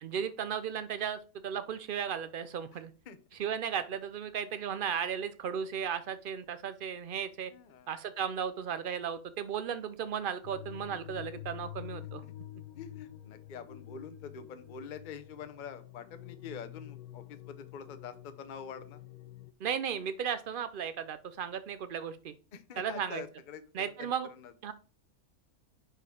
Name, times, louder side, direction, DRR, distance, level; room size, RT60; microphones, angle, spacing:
voice 1, 0.0-2.9 3.4-7.5 7.9-12.2 19.6-22.3 22.8-23.2 23.7-24.3 24.6-24.7, right 8 dB, 85° right, 12 dB, 0.4 m, -35 dB
voice 2, 7.5-7.9 12.2-12.3 12.7-19.0 22.5-24.5, left 6 dB, 45° left, 10 dB, 0.7 m, -46 dB
sound 1, 10.4-19.5, left 13 dB, 90° left, 1.1 m, -48 dB
10.0 x 4.4 x 3.7 m, 0.37 s
omnidirectional pair, 1.6 m